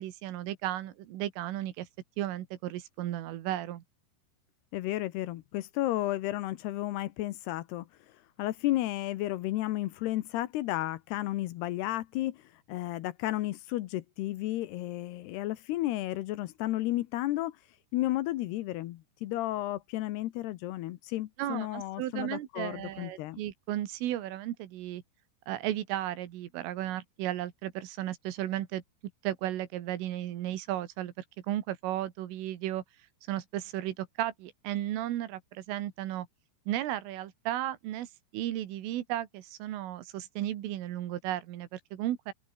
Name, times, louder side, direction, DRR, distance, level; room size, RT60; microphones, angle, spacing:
voice 1, 0.0-1.9 2.2-3.8 21.4-25.0 25.5-28.8 29.2-31.1 31.5-32.8 33.3-36.3 36.7-38.1 38.3-42.3, right 13 dB, 85° right, 4.5 m, -34 dB
voice 2, 4.7-7.9 8.4-17.6 17.9-23.4, left 16 dB, 75° left, 2.5 m, -33 dB
open air
omnidirectional pair, 5.7 m